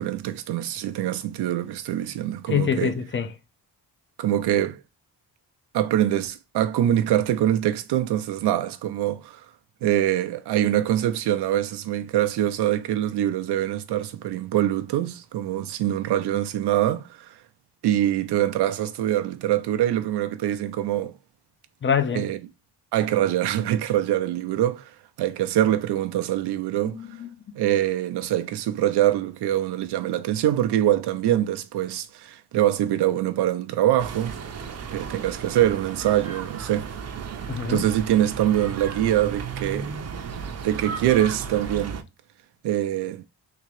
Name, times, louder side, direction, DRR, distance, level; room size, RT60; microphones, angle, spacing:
voice 1, 0.0-2.9 4.2-4.8 5.7-9.5 9.8-17.4 17.8-21.1 22.1-22.4 22.9-27.0 27.6-34.3 34.9-36.9 37.7-39.9 40.6-42.0 42.6-43.2, right 12 dB, 85° right, 0.5 m, -24 dB
voice 2, 2.5-3.3 21.8-22.2 26.9-27.6 37.5-37.8, left 7 dB, 30° left, 0.6 m, -25 dB
sound 1, 34.0-42.0, right 6 dB, 40° right, 0.6 m, -34 dB
3.7 x 2.8 x 3.1 m
cardioid pair, 115°, 39 cm